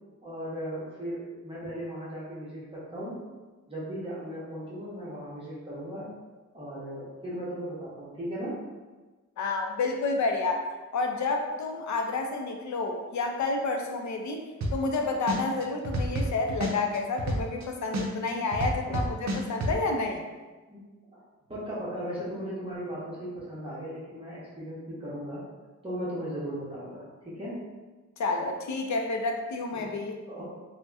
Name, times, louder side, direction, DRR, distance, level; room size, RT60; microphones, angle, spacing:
voice 1, 0.2-3.2 3.7-6.1 6.5-8.6 18.9-19.0 20.7-20.8 21.1-21.2 21.5-25.4 25.8-27.6 29.7-29.9 30.3-30.4, equal, 20° right, -9 dB, 0.7 m, -37 dB
voice 2, 9.4-10.7 10.9-14.4 14.7-20.3 28.2-30.2, left 3 dB, 65° left, 3 dB, 0.5 m, -30 dB
sound 1, 14.6-15.0 15.3-17.6 17.9-19.7, right 1 dB, 65° right, 0.5 m, -29 dB
2.7 x 2.1 x 3.4 m, 1.3 s
wide cardioid pair, 170°, 31 cm